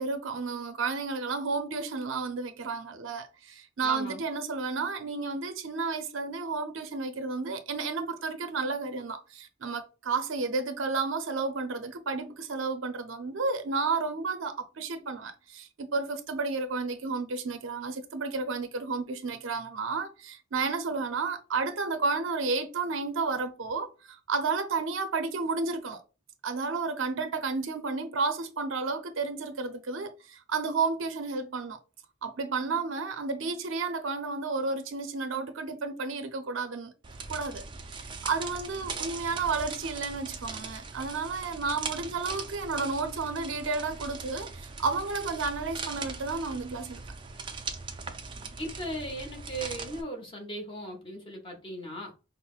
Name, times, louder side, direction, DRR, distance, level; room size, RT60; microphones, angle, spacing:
voice 1, 0.0-26.0 26.4-31.8 32.2-36.9 37.3-37.6 38.0-47.0, right 4 dB, 70° right, 0.5 m, -32 dB
voice 2, 3.8-4.2 48.6-52.1, right 1 dB, 25° left, 0.9 m, -37 dB
sound 1, 37.0-50.0, right 4 dB, 25° right, 0.4 m, -40 dB
5.5 x 2.0 x 2.4 m
head